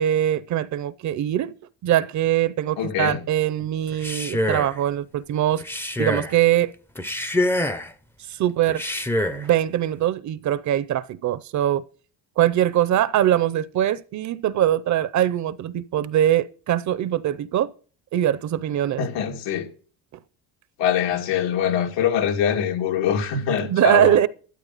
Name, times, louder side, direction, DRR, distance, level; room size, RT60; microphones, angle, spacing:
voice 1, 0.0-1.5 1.8-5.6 6.0-6.7 8.4-8.8 9.3-11.8 12.4-17.7 18.1-19.0 23.6-24.3, right 11 dB, 45° right, 0.6 m, -22 dB
voice 2, 2.8-3.2 19.0-19.7 20.8-24.2, left 8 dB, 85° left, 2.5 m, -23 dB
Male speech man speaking, 3.9-4.8 5.6-6.4 7.0-7.9 8.7-9.5, left 1 dB, 5° left, 0.5 m, -25 dB
13.0 x 12.5 x 4.0 m
cardioid pair, 170°, 43 cm